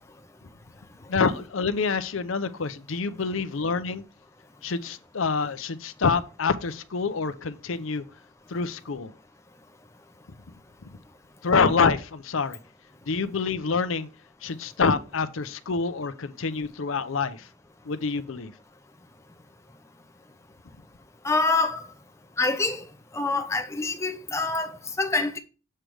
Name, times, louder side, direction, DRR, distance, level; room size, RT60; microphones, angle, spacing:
voice 1, 1.1-4.0 4.6-8.0 8.5-9.1 11.4-12.6 13.1-14.1 14.4-17.5 17.9-18.5, left 4 dB, 75° left, 0.6 m, -26 dB
voice 2, 21.2-21.9 22.4-22.9 23.1-25.4, left 3 dB, 15° left, 0.7 m, -26 dB
7.5 x 3.4 x 6.2 m
head